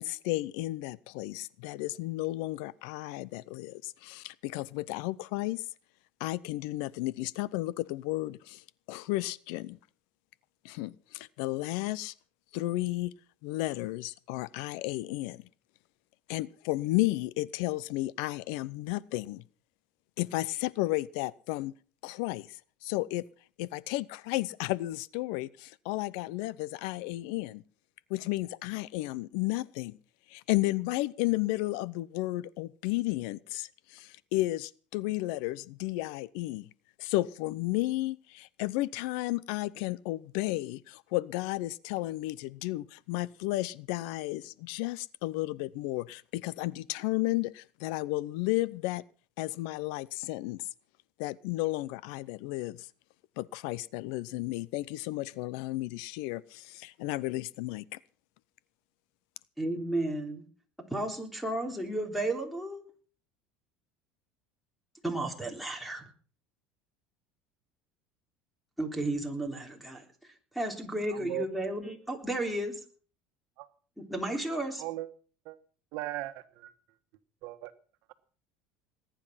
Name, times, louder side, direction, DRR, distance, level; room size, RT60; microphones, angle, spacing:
voice 1, 0.0-5.6 6.2-9.8 10.6-12.1 12.5-13.1 13.4-15.4 16.3-19.4 20.2-21.7 22.0-23.3 23.6-27.6 28.1-30.0 30.3-36.7 37.0-49.0 49.4-50.6 51.2-52.9 53.4-58.0, left 19 dB, 75° left, 21 dB, 0.6 m, -33 dB
voice 2, 59.6-60.4 60.9-62.8 65.0-66.1 68.8-72.8 74.0-74.8, right 1 dB, ahead, 0 dB, 3.4 m, -33 dB
voice 3, 71.1-71.4 73.6-73.7 74.8-75.1 75.4-75.6 75.9-76.7 77.4-77.7, right 17 dB, 65° right, 9 dB, 1.5 m, -37 dB
20.0 x 10.0 x 5.8 m, 0.42 s
cardioid pair, 135°, 4 cm